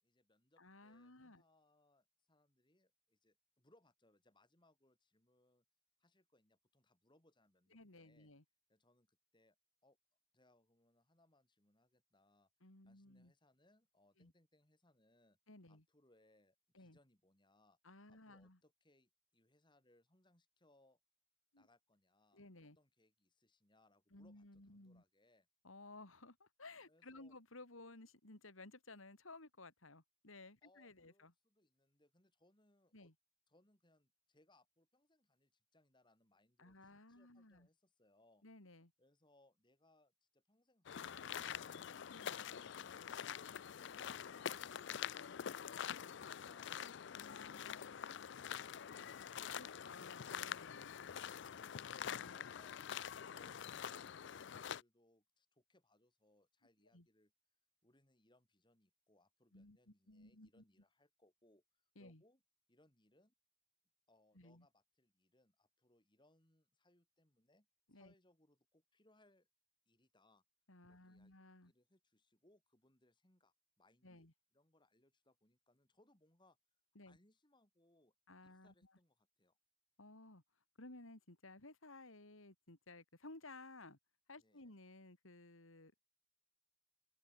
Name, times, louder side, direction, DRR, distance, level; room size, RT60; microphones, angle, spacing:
voice 1, 0.0-5.6 6.0-8.3 8.7-9.6 9.8-10.0 10.3-15.4 15.7-17.8 18.1-21.0 21.6-25.5 26.9-27.4 30.6-33.1 33.5-38.4 39.0-41.9 53.2-57.3 57.8-62.4 62.7-63.3 64.1-69.5 69.9-70.4 70.9-71.3 71.7-74.3 74.5-76.6 77.1-78.1 78.4-79.6 84.4-84.8, left 1 dB, 25° left, 4.0 m, -74 dB
voice 2, 0.6-1.4 7.7-8.4 12.6-13.3 14.2-14.3 15.5-15.8 16.7-17.0 17.8-18.6 21.5-21.7 22.3-22.8 24.1-25.0 25.6-31.3 32.9-33.1 36.6-37.7 38.4-38.9 42.1-42.4 47.1-47.9 49.5-51.0 52.0-52.4 56.9-57.1 59.5-60.6 62.0-62.2 64.3-64.7 67.9-68.1 70.7-71.7 74.0-74.3 77.0-77.2 78.3-78.9 80.0-80.4 80.8-84.0 84.3-85.9, left 2 dB, 85° left, 3.8 m, -57 dB
sound 1, 40.9-54.8, left 8 dB, 60° left, 0.4 m, -46 dB
head